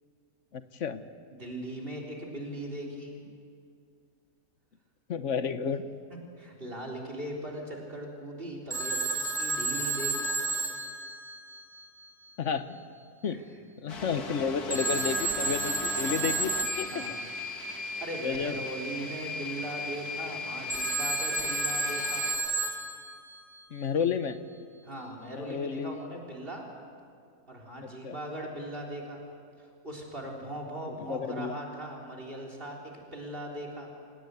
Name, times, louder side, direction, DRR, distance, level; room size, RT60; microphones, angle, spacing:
voice 1, 0.5-1.0 5.1-5.8 12.4-12.8 13.2-13.4 13.8-17.0 18.2-18.6 23.7-24.4 25.4-26.0 27.8-28.2 30.9-31.6, left 6 dB, 55° left, 11 dB, 1.2 m, -31 dB
voice 2, 1.4-3.2 6.4-10.4 13.3-13.4 16.9-17.2 17.8-22.3 24.8-26.7 27.5-29.2 29.6-33.9, right 1 dB, 35° right, 1 dB, 3.8 m, -39 dB
Telephone, 8.7-11.8 14.7-17.3 20.7-23.4, right 3 dB, ahead, 3.7 m, -31 dB
sound 1, 13.9-22.4, left 3 dB, 80° left, 2.5 m, -38 dB
27.0 x 18.5 x 8.2 m, 2.3 s
omnidirectional pair, 1.6 m